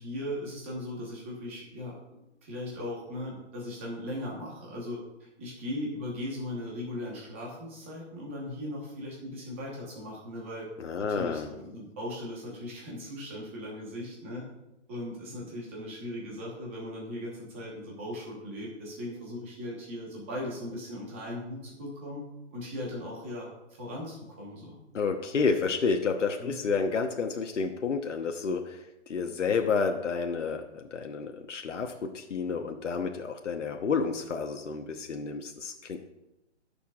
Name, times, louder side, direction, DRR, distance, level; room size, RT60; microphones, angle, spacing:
voice 1, 0.0-2.0 2.4-10.7 11.0-14.5 14.9-22.2 22.5-24.8 26.4-26.6, left 1 dB, 10° right, -3 dB, 1.2 m, -38 dB
voice 2, 10.8-11.5 24.9-36.0, left 5 dB, 85° left, 3 dB, 1.1 m, -30 dB
18.0 x 6.9 x 2.4 m, 0.94 s
hypercardioid pair, 180°, 35 cm